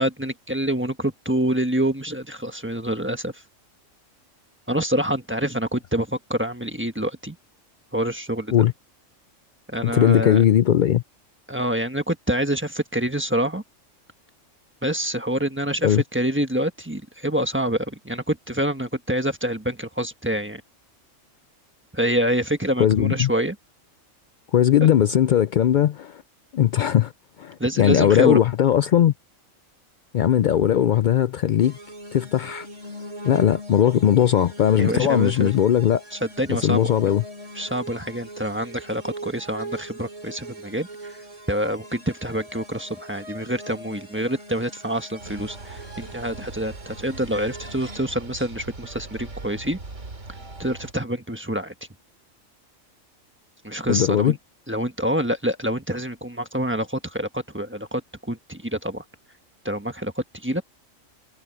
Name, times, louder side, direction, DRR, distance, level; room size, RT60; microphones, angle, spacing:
voice 1, 0.0-3.4 4.7-7.4 7.9-8.5 9.7-10.4 11.5-13.6 14.8-20.6 21.9-23.6 24.8-24.9 27.6-28.4 34.8-35.5 36.1-36.9 37.5-41.1 41.5-49.8 50.6-51.7 53.6-54.4 54.7-59.0 59.6-60.6, right 1 dB, 10° right, 1.3 m, -26 dB
voice 2, 9.8-11.0 15.8-16.0 22.8-23.3 24.5-26.2 26.5-27.1 27.4-29.1 30.1-31.8 32.1-32.7 33.2-36.0 36.5-37.2 53.9-54.4, left 10 dB, 85° left, 0.4 m, -19 dB
sound 1, 31.6-48.0, right 1 dB, 25° right, 2.8 m, -41 dB
sound 2, 45.2-50.9, right 3 dB, 65° right, 2.9 m, -40 dB
omnidirectional pair, 1.4 m